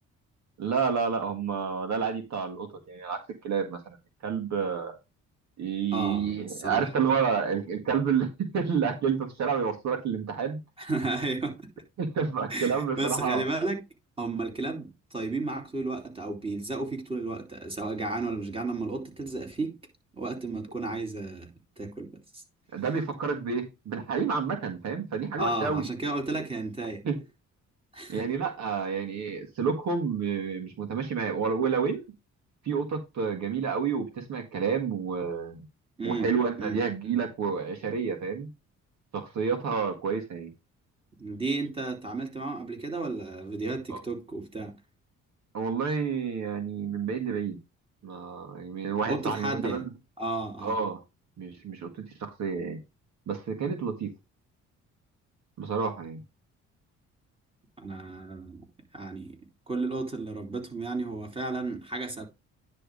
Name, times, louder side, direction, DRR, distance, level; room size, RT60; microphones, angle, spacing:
voice 1, 0.6-4.0 4.2-5.0 5.6-10.6 12.0-13.4 22.7-25.9 27.0-27.2 28.1-32.0 32.6-35.6 36.0-38.5 39.1-40.5 43.9-44.0 45.5-47.6 48.0-49.9 50.6-51.0 51.4-52.8 53.3-54.1 55.6-56.2, right 6 dB, 65° right, 1.7 m, -29 dB
voice 2, 5.9-6.9 10.8-11.6 12.5-13.8 14.2-19.7 20.2-22.4 25.4-27.0 27.9-28.2 36.0-36.8 41.2-44.7 49.1-49.8 50.2-50.8 57.8-58.7 58.9-59.4 59.7-62.2, right 2 dB, 20° right, 3.0 m, -33 dB
10.0 x 3.4 x 5.2 m
cardioid pair, 90°, 30 cm